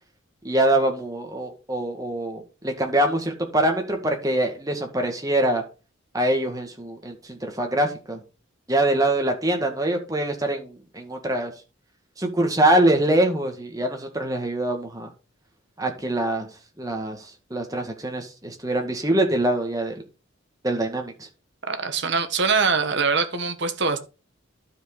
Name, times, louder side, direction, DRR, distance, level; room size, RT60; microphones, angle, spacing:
voice 1, 0.4-5.6 6.1-8.2 8.7-11.5 12.2-15.1 15.8-16.5 16.8-17.3 17.5-19.9 20.6-21.3, right 1 dB, 15° right, 1.8 m, -24 dB
voice 2, 21.7-24.0, right 4 dB, 60° right, 1.3 m, -23 dB
12.0 x 5.1 x 4.0 m
head